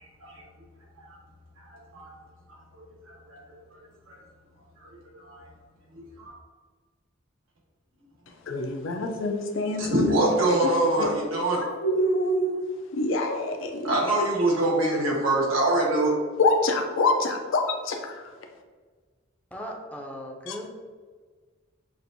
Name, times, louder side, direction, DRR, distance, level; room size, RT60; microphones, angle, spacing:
voice 1, 5.9-6.3 9.8-11.6 13.8-16.2, right 2 dB, 85° right, -3 dB, 1.3 m, -24 dB
voice 2, 8.5-10.6 11.0-11.2 11.6-12.5 12.9-14.0 16.4-18.2 20.5-20.6, left 2 dB, 70° left, 4 dB, 0.5 m, -26 dB
voice 3, 19.5-20.7, equal, 5° left, -1 dB, 0.5 m, -37 dB
6.0 x 2.5 x 2.6 m, 1.5 s
head